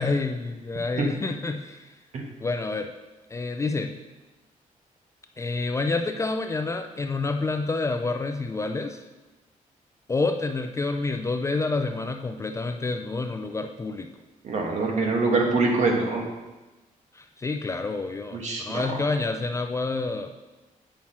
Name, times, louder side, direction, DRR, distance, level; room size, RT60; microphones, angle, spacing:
voice 1, 0.0-1.9 2.4-2.9 3.3-4.0 5.4-9.0 10.1-14.1 17.1-20.3, left 3 dB, 20° left, 6 dB, 0.4 m, -28 dB
voice 2, 14.4-16.2 18.3-18.9, right 3 dB, 55° right, 1 dB, 1.5 m, -24 dB
8.7 x 5.9 x 4.3 m, 1.1 s
wide cardioid pair, 160°, 14 cm